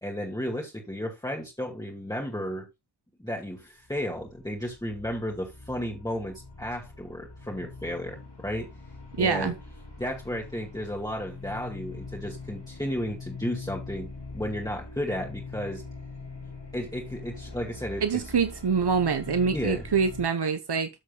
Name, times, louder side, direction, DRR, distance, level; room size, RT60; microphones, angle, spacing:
voice 1, 0.0-2.7 3.2-8.7 9.2-9.5 10.0-15.8 16.7-18.2 19.5-19.8, equal, 10° left, 2.2 m, -33 dB
sound 1, 3.9-20.3, left 3 dB, 80° left, 3.9 m, -43 dB
voice 2, 9.2-9.5 18.0-20.9, right 5 dB, 70° right, 1.1 m, -25 dB
13.5 x 6.5 x 2.4 m
wide cardioid pair, 60°, 41 cm